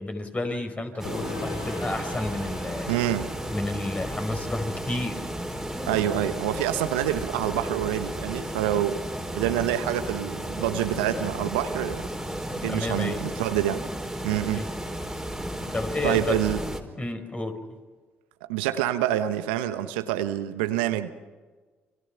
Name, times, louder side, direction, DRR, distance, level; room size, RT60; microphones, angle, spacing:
voice 1, 0.0-2.9 3.5-5.2 9.4-9.5 12.6-13.3 14.5-14.7 15.7-16.3 17.0-17.6, left 2 dB, 25° left, 6 dB, 5.0 m, -31 dB
Gong, 1.0-8.5, left 3 dB, 80° left, 4.0 m, -43 dB
sound 1, 1.0-16.8, right 1 dB, 5° right, 4.3 m, -34 dB
voice 2, 2.9-3.3 5.9-9.0 9.3-12.1 12.5-13.8 14.2-14.7 16.0-16.6 18.5-21.1, right 12 dB, 75° right, 10 dB, 1.1 m, -27 dB
29.0 x 26.0 x 5.8 m, 1.4 s
figure-of-eight pair, 45°, 5 cm